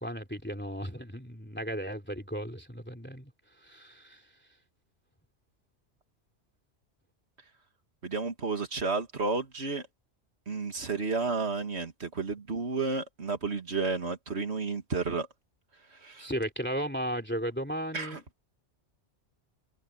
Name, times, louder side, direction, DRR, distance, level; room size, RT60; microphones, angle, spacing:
voice 1, 0.0-3.3 3.6-4.2 16.2-18.2, equal, 10° left, 3.0 m, -35 dB
voice 2, 8.0-9.9 10.5-15.3 15.9-16.3 17.9-18.2, right 4 dB, 65° right, 2.3 m, -32 dB
omnidirectional pair, 1.2 m